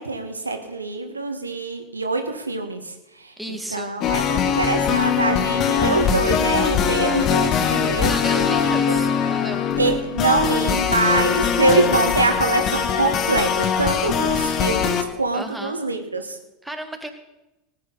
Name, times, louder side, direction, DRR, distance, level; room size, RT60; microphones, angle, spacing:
voice 1, 0.0-9.0 9.8-16.4, right 3 dB, 85° right, 6 dB, 1.4 m, -24 dB
voice 2, 3.4-4.0 8.0-9.8 15.3-15.8 16.6-17.1, right 1 dB, 5° right, 5 dB, 1.9 m, -33 dB
sound 1, 4.0-15.0, left 7 dB, 40° left, 1.2 m, -21 dB
19.0 x 9.4 x 4.0 m, 0.93 s
figure-of-eight pair, 80°, 0 cm